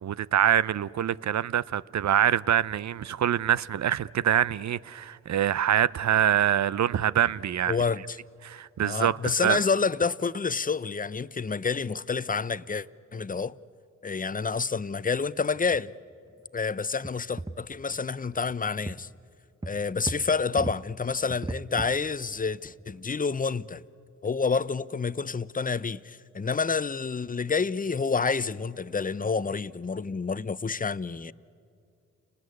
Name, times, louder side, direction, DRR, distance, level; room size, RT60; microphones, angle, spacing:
voice 1, 0.0-7.8 8.4-9.2 9.4-9.6, right 10 dB, 55° right, 0.7 m, -25 dB
voice 2, 7.7-8.2 8.8-13.6 14.0-15.9 16.5-19.1 19.6-23.8 24.2-31.3, left 5 dB, 25° left, 0.7 m, -28 dB
sound 1, 15.2-15.3 15.5-15.8 16.1-16.2 17.0-17.8 18.3-18.5 18.9-19.0 19.6-20.8 21.3-22.1 22.5-22.6 22.8-23.1 23.7-23.8, right 2 dB, 10° right, 0.9 m, -37 dB
29.5 x 20.0 x 9.6 m
supercardioid pair, 40°, 34 cm